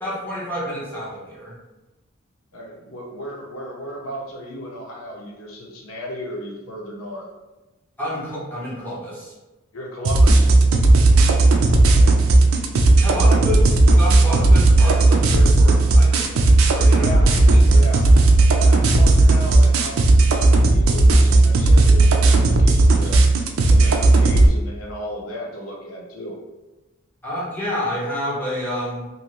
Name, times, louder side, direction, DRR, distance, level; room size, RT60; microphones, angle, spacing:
voice 1, 0.0-1.5 8.0-9.3 11.1-11.3 13.0-13.6 14.0-16.3 16.7-17.1 17.7-17.8 27.2-29.1, equal, 10° left, -8 dB, 1.0 m, -29 dB
voice 2, 2.5-7.2 9.7-10.5 11.9-12.1 13.1-13.5 16.9-17.3 17.7-23.2 23.7-26.4, equal, 90° left, -1 dB, 0.7 m, -34 dB
sound 1, 10.0-24.5, right 2 dB, 90° right, 0.4 m, -14 dB
2.7 x 2.6 x 3.0 m, 1.1 s
head